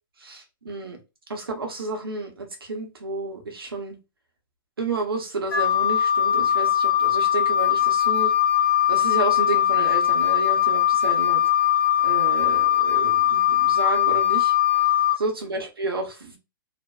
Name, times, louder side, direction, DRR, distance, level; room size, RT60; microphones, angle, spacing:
voice 1, 0.2-1.0 1.3-4.0 4.8-8.3 8.9-11.4 12.0-14.5 15.2-16.4, right 3 dB, 85° right, 0.9 m, -31 dB
Wind instrument woodwind instrument, 5.5-15.2, left 11 dB, 75° left, 0.7 m, -20 dB
2.5 x 2.1 x 2.3 m
hypercardioid pair, 115°, 12 cm